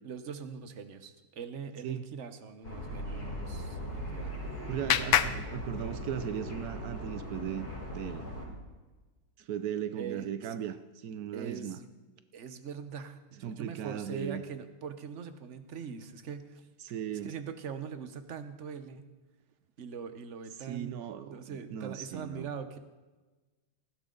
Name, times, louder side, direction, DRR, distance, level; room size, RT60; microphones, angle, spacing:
voice 1, 0.0-4.4 4.8-5.2 10.0-10.3 11.3-11.9 12.3-16.7 17.2-19.0 19.8-21.0 21.2-22.8, right 6 dB, 45° right, 9 dB, 1.0 m, -42 dB
sound 1, 2.6-8.4, equal, 40° left, 6.6 m, -39 dB
Clapping, 3.8-6.4, left 11 dB, 70° left, 1.4 m, -32 dB
voice 2, 4.7-8.3 9.4-11.8 13.4-14.4 16.8-17.4 20.6-22.5, right 9 dB, 85° right, 11 dB, 0.8 m, -37 dB
19.5 x 15.5 x 3.9 m, 1.2 s
omnidirectional pair, 2.4 m